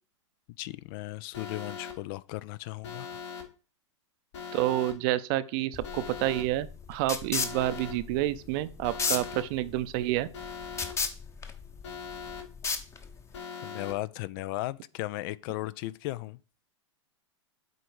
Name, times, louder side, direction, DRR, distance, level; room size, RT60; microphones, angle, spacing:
voice 1, 0.6-3.2 13.6-16.4, left 17 dB, 45° left, 0.4 m, -36 dB
Alarm, 1.3-1.9 2.8-3.4 4.3-4.9 5.8-6.4 7.3-7.9 8.8-9.4 10.3-10.9 11.8-12.4 13.3-13.9, left 6 dB, 65° left, 2.3 m, -40 dB
voice 2, 4.5-10.3, right 15 dB, 45° right, 0.6 m, -29 dB
sound 1, 5.7-13.4, left 4 dB, 20° left, 0.9 m, -35 dB
8.0 x 4.2 x 4.6 m
hypercardioid pair, 110°, 16 cm